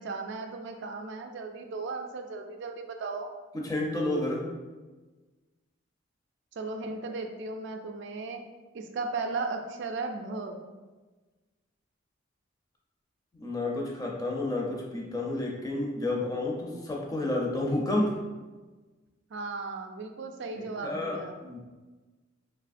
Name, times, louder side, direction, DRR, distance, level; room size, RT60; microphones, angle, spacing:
voice 1, 0.0-3.3 6.6-8.5 8.7-10.6 19.3-21.4, right 3 dB, 65° right, 5 dB, 0.3 m, -36 dB
voice 2, 3.5-4.4 13.3-18.2 20.6-21.6, left 2 dB, 20° left, -2 dB, 0.5 m, -30 dB
3.3 x 2.7 x 2.5 m, 1.3 s
head